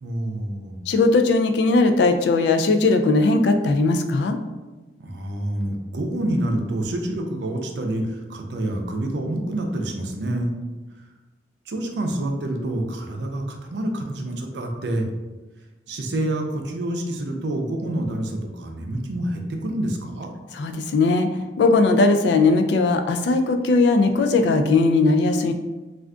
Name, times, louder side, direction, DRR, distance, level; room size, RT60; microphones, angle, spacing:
voice 1, 0.0-0.8 5.0-10.5 11.7-15.1 15.9-20.3, right 1 dB, 75° right, 3 dB, 0.5 m, -27 dB
voice 2, 0.9-4.4 20.5-21.3 21.6-25.5, left 3 dB, 70° left, 6 dB, 0.3 m, -18 dB
2.4 x 2.3 x 3.6 m, 1.2 s
head